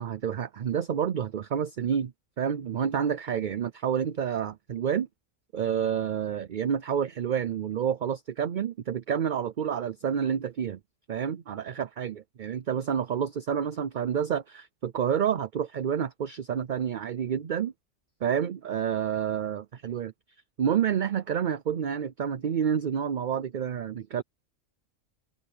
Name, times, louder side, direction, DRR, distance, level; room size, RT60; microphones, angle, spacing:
voice 1, 0.0-2.1 2.4-5.1 5.5-10.8 11.1-17.7 18.2-20.1 20.6-24.2, right 8 dB, 50° right, 0.6 m, -29 dB
omnidirectional pair, 1.4 m